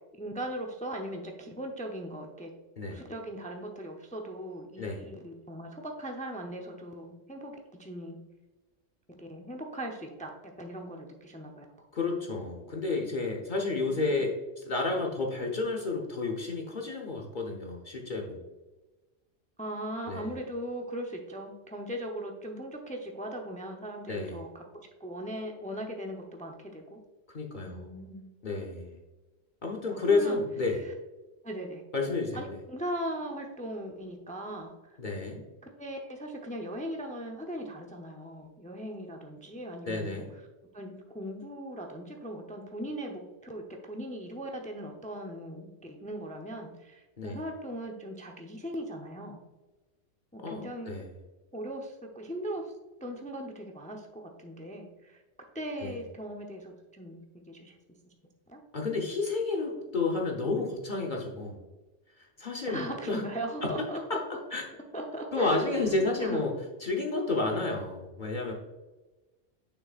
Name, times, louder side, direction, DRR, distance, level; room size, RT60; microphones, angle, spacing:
voice 1, 0.2-2.5 2.9-8.2 9.1-11.7 13.7-14.2 19.6-27.0 27.6-28.3 29.9-30.9 31.4-35.0 35.8-40.2 40.7-49.4 50.3-51.0 51.5-52.7 53.0-55.2 55.5-57.2 57.5-57.8 58.5-58.6 62.7-64.2 64.9-65.9 66.2-66.4 67.5-67.7, right 1 dB, 10° left, 2 dB, 0.4 m, -39 dB
voice 2, 11.9-18.4 20.1-20.3 24.1-24.4 27.3-27.9 28.4-29.0 29.6-30.8 31.9-32.6 35.0-35.4 39.9-40.3 47.2-47.4 50.4-51.0 55.8-55.9 58.7-61.6 62.4-63.2 64.5-64.6 65.3-66.5 66.8-68.5, left 3 dB, 45° left, 0 dB, 0.9 m, -31 dB
6.8 x 6.0 x 2.4 m, 1.1 s
omnidirectional pair, 1.3 m